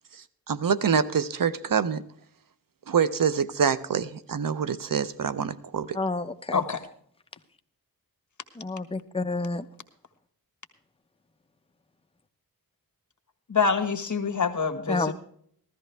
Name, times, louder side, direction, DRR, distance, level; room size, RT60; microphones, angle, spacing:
voice 1, 0.5-2.0 2.9-6.0, right 7 dB, 65° right, 14 dB, 0.8 m, -25 dB
voice 2, 5.9-6.6 8.5-9.7 14.9-15.1, left 3 dB, 15° left, 8 dB, 0.7 m, -29 dB
voice 3, 13.5-15.1, left 5 dB, 55° left, 8 dB, 1.5 m, -25 dB
15.0 x 13.5 x 3.4 m, 0.62 s
wide cardioid pair, 80°, 35 cm